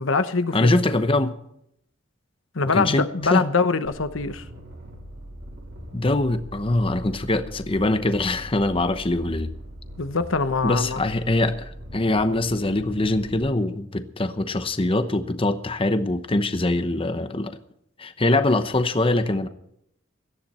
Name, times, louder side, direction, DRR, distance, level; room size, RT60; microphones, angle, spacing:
voice 1, 0.0-0.8 2.5-4.4 10.0-11.0, left 4 dB, 75° left, 11 dB, 1.0 m, -23 dB
voice 2, 0.5-1.3 2.7-3.4 5.9-9.5 10.6-17.6 18.0-19.5, left 2 dB, 25° left, 10 dB, 0.8 m, -23 dB
sound 1, 3.8-13.4, equal, 65° right, 4.2 m, -41 dB
17.5 x 13.5 x 4.3 m, 0.73 s
head